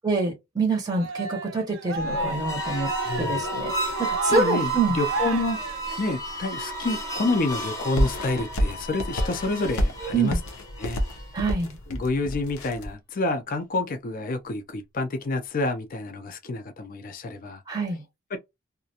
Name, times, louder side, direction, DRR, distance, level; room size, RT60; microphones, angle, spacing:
voice 1, 0.0-2.9 3.2-5.0 10.1-10.4 11.3-11.8 17.7-18.0, right 3 dB, 20° right, 0.6 m, -26 dB
Cheering, 0.9-6.4, right 2 dB, 65° right, 0.5 m, -33 dB
sound 1, 2.0-11.4, right 2 dB, 15° left, 0.8 m, -32 dB
voice 2, 3.0-3.5 4.3-5.6 6.0-10.4 10.8-11.0 11.9-17.6 18.3-18.4, left 2 dB, 40° left, 0.4 m, -28 dB
sound 2, 8.0-12.9, equal, 80° left, 0.6 m, -28 dB
2.4 x 2.1 x 2.7 m
head